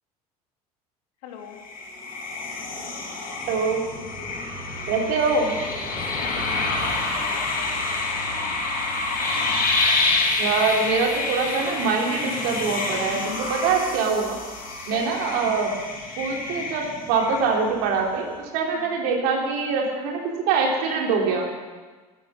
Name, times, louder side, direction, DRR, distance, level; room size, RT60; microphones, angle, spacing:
voice 1, 1.2-1.6 5.3-5.4 6.1-8.1 14.9-15.3 18.7-19.0, left 7 dB, 70° left, 2 dB, 2.6 m, -41 dB
sound 1, 1.6-17.9, left 3 dB, 50° left, 4.9 m, -28 dB
voice 2, 3.5-3.8 4.9-5.5 10.4-14.4 14.9-15.7 16.2-20.2 20.5-21.5, right 4 dB, 65° right, 0 dB, 3.4 m, -24 dB
15.0 x 12.0 x 6.2 m, 1.4 s
hypercardioid pair, 70°, 20 cm